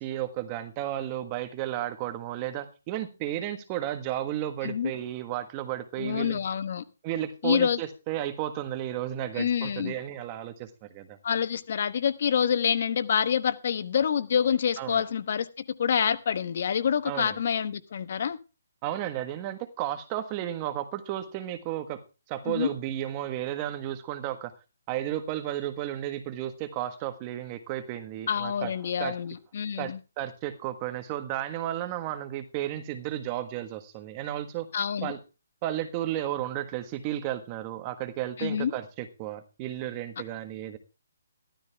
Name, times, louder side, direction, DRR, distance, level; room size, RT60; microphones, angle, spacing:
voice 1, 0.0-6.4 7.0-11.2 14.8-15.0 17.1-17.4 18.8-22.0 22.3-24.5 24.9-28.7 29.0-29.2 29.8-34.7 35.0-35.2 35.6-40.8, right 12 dB, 20° right, 1.4 m, -33 dB
voice 2, 6.0-6.8 7.4-7.8 9.4-9.9 11.2-15.5 15.8-18.4 22.5-22.7 28.3-30.0 34.7-35.1 38.4-38.7, left 8 dB, 45° left, 1.2 m, -27 dB
14.5 x 13.0 x 3.5 m
hypercardioid pair, 165°, 0 cm